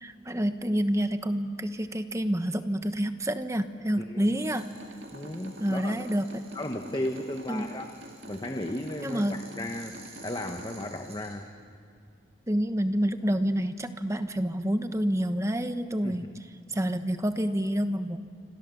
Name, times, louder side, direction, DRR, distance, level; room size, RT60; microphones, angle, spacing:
voice 1, 0.0-4.7 5.6-6.4 7.5-7.7 9.0-9.4 12.5-16.3 16.7-18.2, equal, 15° right, 9 dB, 1.0 m, -28 dB
sound 1, 4.4-11.3, right 4 dB, 35° right, 6.1 m, -53 dB
sound 2, 4.4-10.9, right 1 dB, 70° right, 2.3 m, -47 dB
voice 2, 5.1-6.0 6.5-7.9 8.3-11.5 16.0-16.2, left 1 dB, 25° left, 4 dB, 1.1 m, -35 dB
28.5 x 26.0 x 7.1 m, 2.3 s
head